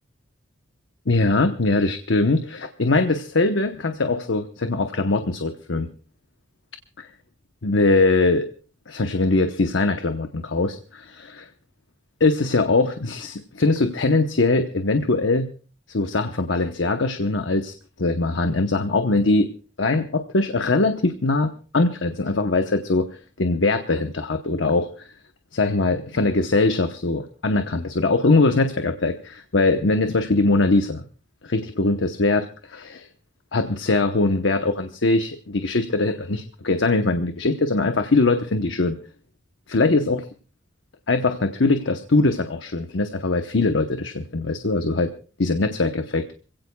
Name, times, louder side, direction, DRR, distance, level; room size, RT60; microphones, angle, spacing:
voice 1, 1.1-5.9 7.0-7.1 7.6-8.5 8.9-11.5 12.2-15.5 15.9-19.5 19.8-23.1 23.4-25.1 25.5-31.0 31.4-33.1 33.5-39.0 39.7-40.3 41.1-45.1 45.4-46.3, left 3 dB, 90° left, 8 dB, 1.0 m, -21 dB
26.5 x 16.5 x 2.3 m, 0.36 s
head